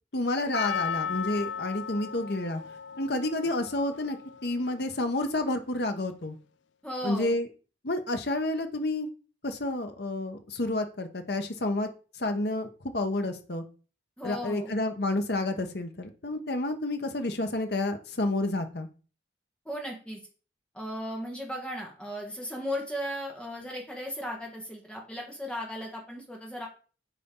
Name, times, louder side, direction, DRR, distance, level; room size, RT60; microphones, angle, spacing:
voice 1, 0.1-2.6 3.0-4.2 4.4-6.4 7.0-7.5 7.8-9.1 9.4-11.9 12.2-13.6 14.2-18.9, left 2 dB, 60° left, 6 dB, 1.0 m, -30 dB
Percussion, 0.5-4.9 5.2-5.3, left 7 dB, 80° left, 0.4 m, -36 dB
voice 2, 6.8-7.4 14.2-14.7 19.6-20.2 20.7-26.7, equal, 5° left, 0 dB, 1.4 m, -36 dB
8.2 x 4.2 x 3.7 m, 0.38 s
head